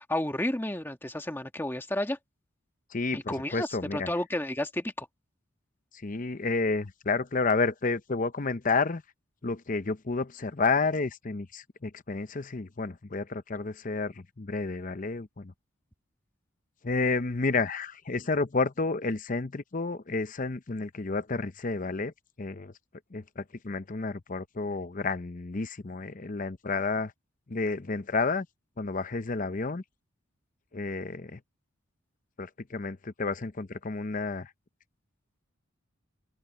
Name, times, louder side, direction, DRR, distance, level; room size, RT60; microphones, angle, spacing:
voice 1, 0.0-2.2 3.1-5.1, left 1 dB, 10° left, 1.5 m, -31 dB
voice 2, 2.9-4.1 6.0-9.0 9.4-15.5 16.8-22.1 22.4-22.7 23.1-27.1 27.5-28.5 28.8-29.8 30.7-31.4 32.4-34.5, left 3 dB, 40° left, 0.7 m, -30 dB
open air
head